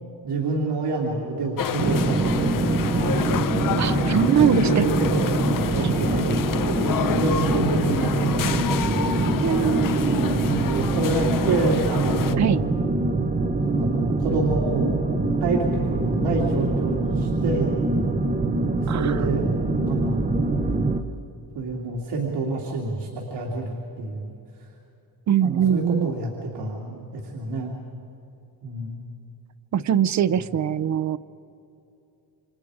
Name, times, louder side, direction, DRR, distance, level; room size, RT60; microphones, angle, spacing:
voice 1, 0.2-2.6 2.9-3.5 3.9-8.8 9.6-12.6 13.8-15.1 15.4-17.8 18.7-20.2 21.5-24.3 25.4-27.8 28.6-29.0, right 3 dB, 75° right, -3 dB, 2.8 m, -28 dB
sound 1, 1.6-12.3, left 9 dB, 50° left, 0.8 m, -29 dB
sound 2, 1.8-21.0, right 2 dB, 20° right, 0.9 m, -24 dB
voice 2, 3.8-4.8 9.4-10.5 12.4-12.6 18.9-19.2 25.3-26.1 29.7-31.2, right 9 dB, 45° right, 14 dB, 0.6 m, -22 dB
28.5 x 26.5 x 5.0 m, 2.8 s
cardioid pair, 170°, 41 cm